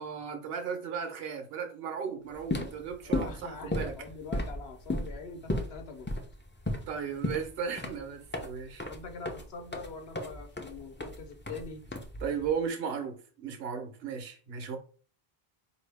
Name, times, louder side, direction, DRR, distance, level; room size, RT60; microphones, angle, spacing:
voice 1, 0.0-4.0 6.9-8.9 12.2-14.8, right 6 dB, 70° right, 1.0 m, -36 dB
sound 1, 2.3-12.5, left 1 dB, 20° left, 0.3 m, -35 dB
voice 2, 3.0-6.2 8.9-11.8, left 4 dB, 75° left, 1.0 m, -44 dB
4.4 x 2.7 x 3.3 m
omnidirectional pair, 1.1 m